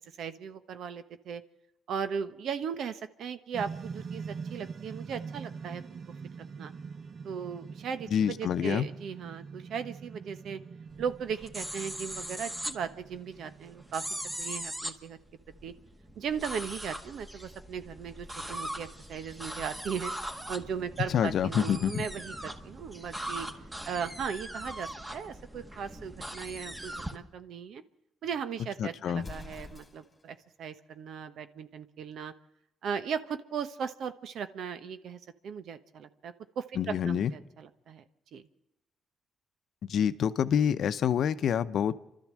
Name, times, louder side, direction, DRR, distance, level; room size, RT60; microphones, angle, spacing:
voice 1, 0.0-1.4 1.9-5.8 6.6-6.7 7.2-10.6 11.0-14.0 14.4-15.2 15.6-15.7 16.2-20.1 20.5-23.5 23.9-27.8 28.2-32.3 32.8-38.0 38.3-38.5, right 7 dB, 70° right, 11 dB, 1.1 m, -37 dB
sound 1, 3.5-15.0, right 5 dB, 45° right, 0.8 m, -44 dB
voice 2, 8.1-8.9 21.1-22.1 28.8-29.2 36.8-37.3 39.9-42.0, left 8 dB, 65° left, 12 dB, 0.8 m, -27 dB
sound 2, 10.9-27.2, equal, 15° right, 1.8 m, -40 dB
Explosion, 29.1-30.3, left 3 dB, 20° left, 2.0 m, -46 dB
29.5 x 12.5 x 7.6 m, 0.91 s
cardioid pair, 90°, 0 cm